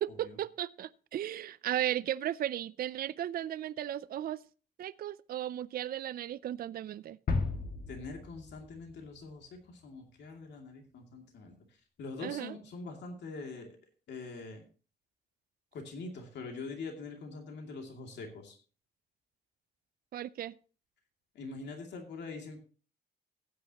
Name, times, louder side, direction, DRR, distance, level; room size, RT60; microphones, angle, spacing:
voice 1, 0.0-4.4 4.8-7.2 12.2-12.6 20.1-20.5, right 11 dB, 55° right, 0.4 m, -35 dB
sound 1, 7.3-9.2 9.6-9.7, left 3 dB, 55° left, 1.5 m, -35 dB
voice 2, 7.9-11.6 12.0-13.8 14.1-14.6 15.7-18.6 21.3-22.6, left 3 dB, 75° left, 2.6 m, -44 dB
15.5 x 9.5 x 2.9 m
cardioid pair, 125°, 18 cm